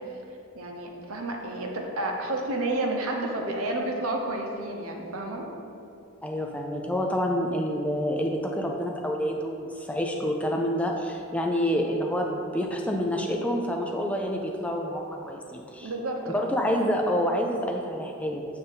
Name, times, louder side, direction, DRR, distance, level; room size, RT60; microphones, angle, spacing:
voice 1, 0.6-5.5 15.8-16.5, right 2 dB, 75° right, 1 dB, 0.8 m, -30 dB
voice 2, 6.2-15.9 16.3-18.5, equal, 5° left, 1 dB, 0.3 m, -28 dB
7.7 x 2.6 x 5.4 m, 2.6 s
head